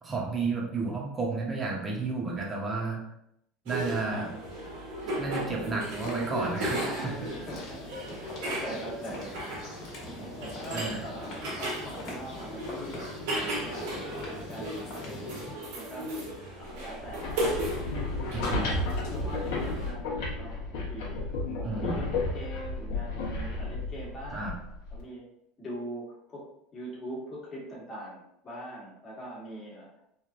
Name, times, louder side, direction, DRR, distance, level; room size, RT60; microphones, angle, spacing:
voice 1, 0.0-3.0 3.7-4.3 5.2-7.2 10.7-11.1 18.3-18.7 21.6-22.1 24.3-24.6, right 3 dB, 20° right, -2 dB, 0.7 m, -32 dB
sound 1, 3.7-19.9, right 1 dB, 80° right, 1.1 m, -36 dB
sound 2, 5.8-15.5, left 2 dB, 50° left, 1.1 m, -44 dB
voice 2, 6.8-13.1 13.3-14.0 14.3-17.5 18.2-24.6 24.9-25.2 25.6-26.4 26.7-30.0, equal, 25° left, -5 dB, 1.1 m, -42 dB
sound 3, 17.0-25.0, left 2 dB, 85° left, 0.8 m, -33 dB
3.0 x 2.4 x 2.5 m, 0.78 s
supercardioid pair, 140°, 0 cm